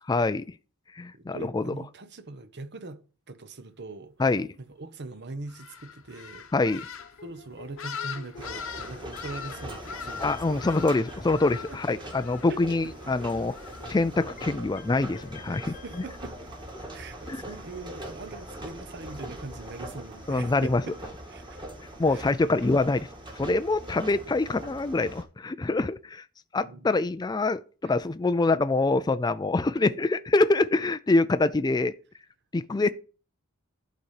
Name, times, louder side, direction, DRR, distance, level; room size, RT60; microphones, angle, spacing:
voice 1, 0.1-0.5 1.0-1.7 4.2-4.5 6.5-6.9 10.2-13.5 13.9-15.7 17.3-17.4 20.3-20.8 22.0-23.1 23.4-26.2 26.5-31.9 32.5-32.9, left 3 dB, 20° left, 0.4 m, -25 dB
voice 2, 1.1-3.0 3.3-4.1 4.6-6.5 7.2-10.8 11.7-11.8 12.5-12.9 15.5-16.5 16.9-21.0 21.3-21.6 22.1-22.3 26.6-26.9 27.8-27.9 32.8-32.9, right 3 dB, 50° right, 1.0 m, -42 dB
sound 1, 5.5-14.6, left 7 dB, 65° left, 1.0 m, -42 dB
sound 2, 6.5-16.0, left 4 dB, 35° left, 1.0 m, -50 dB
sound 3, 8.3-25.2, right 1 dB, 20° right, 1.9 m, -42 dB
12.0 x 4.2 x 6.5 m
head